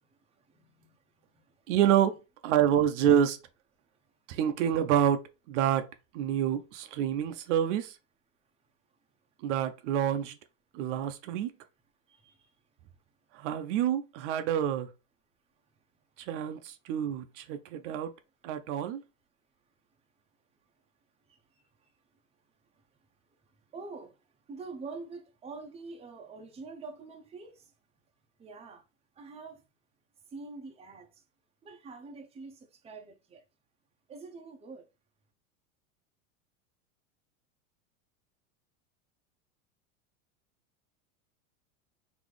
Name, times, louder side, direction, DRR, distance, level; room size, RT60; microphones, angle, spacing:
voice 1, 0.0-1.7 4.1-4.2 8.9-9.0 12.1-12.6 15.7-15.8 21.3-21.9 22.7-22.9 23.4-27.7 28.4-28.9 29.1-29.6 30.3-31.2 31.6-33.4 34.1-34.9, right 4 dB, 15° right, 0.8 m, -46 dB
voice 2, 1.7-2.2 2.4-3.4 4.3-5.9 6.1-8.0 9.4-10.3 10.7-11.5 13.3-14.9 16.2-18.1 18.4-19.0, right 10 dB, 60° right, 0.7 m, -27 dB
4.1 x 2.9 x 3.2 m
supercardioid pair, 130°, 41 cm